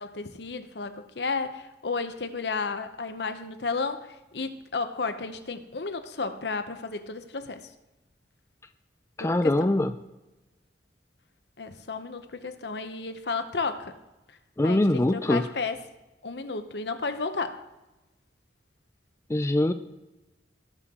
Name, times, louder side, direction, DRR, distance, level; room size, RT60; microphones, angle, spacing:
voice 1, 0.0-7.7 9.2-9.5 11.6-14.0 14.6-15.8 16.2-17.7, left 4 dB, 70° left, 9 dB, 0.9 m, -33 dB
voice 2, 9.2-9.9 14.6-15.5 19.3-19.7, left 1 dB, 15° left, 8 dB, 0.4 m, -23 dB
19.0 x 6.5 x 3.7 m, 1.0 s
head